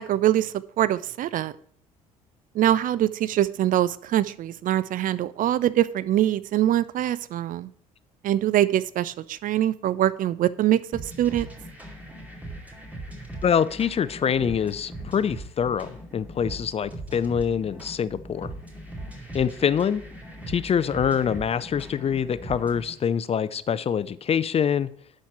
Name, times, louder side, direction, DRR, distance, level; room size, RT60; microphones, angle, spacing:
voice 1, 0.0-1.5 2.5-7.7 8.2-11.5, right 12 dB, 50° right, 18 dB, 0.4 m, -23 dB
sound 1, 10.9-22.9, right 1 dB, 10° right, 2.5 m, -40 dB
voice 2, 13.4-18.5 19.3-20.0 20.5-24.9, left 7 dB, 35° left, 15 dB, 0.5 m, -25 dB
11.0 x 4.3 x 4.7 m, 0.62 s
hypercardioid pair, 55°, 18 cm